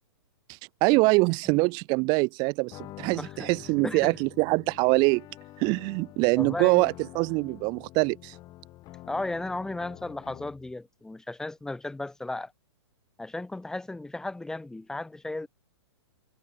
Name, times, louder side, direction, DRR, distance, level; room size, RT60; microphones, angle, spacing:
voice 1, 0.8-5.2 5.6-8.3, right 28 dB, 30° right, 0.7 m, -24 dB
sound 1, 2.7-10.7, left 16 dB, 25° left, 8.0 m, -47 dB
voice 2, 3.2-3.5 3.8-4.2 6.4-6.9 9.0-12.5 13.2-15.5, left 2 dB, 5° left, 1.0 m, -35 dB
hypercardioid pair, 145°, 15 cm